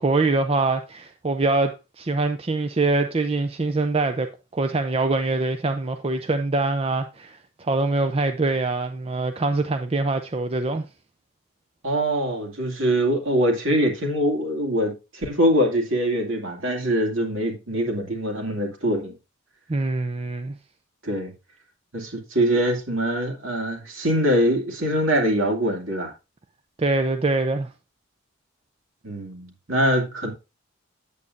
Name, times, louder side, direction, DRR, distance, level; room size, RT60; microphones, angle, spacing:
voice 1, 0.0-10.8 19.7-20.6 26.8-27.7, right 3 dB, 25° right, 0.5 m, -24 dB
voice 2, 11.8-19.1 21.0-21.3 21.9-26.1 29.0-30.3, equal, 65° right, 2.4 m, -23 dB
8.5 x 8.5 x 2.6 m
head